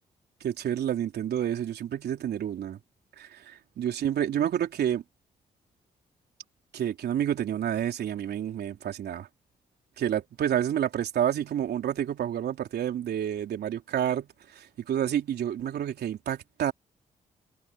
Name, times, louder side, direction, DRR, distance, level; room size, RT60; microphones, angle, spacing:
voice 1, 0.4-2.8 3.2-5.0 6.7-9.3 10.0-16.7, right 10 dB, 70° right, 3.5 m, -29 dB
hypercardioid pair, 45°, 17 cm